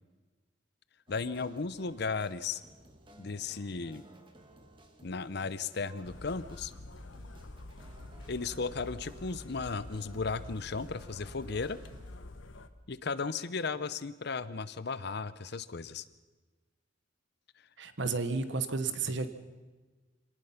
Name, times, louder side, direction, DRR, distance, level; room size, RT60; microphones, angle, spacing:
voice 1, 1.1-2.6 3.2-4.0 5.0-6.7 8.3-11.8 12.9-16.0, left 4 dB, 55° left, 15 dB, 0.8 m, -35 dB
sound 1, 1.1-12.2, right 1 dB, 25° right, 2.1 m, -57 dB
sound 2, 6.0-12.7, left 2 dB, 75° left, 1.2 m, -47 dB
voice 2, 17.8-19.3, right 4 dB, 65° right, 10 dB, 1.3 m, -32 dB
26.0 x 19.0 x 5.9 m, 1.3 s
head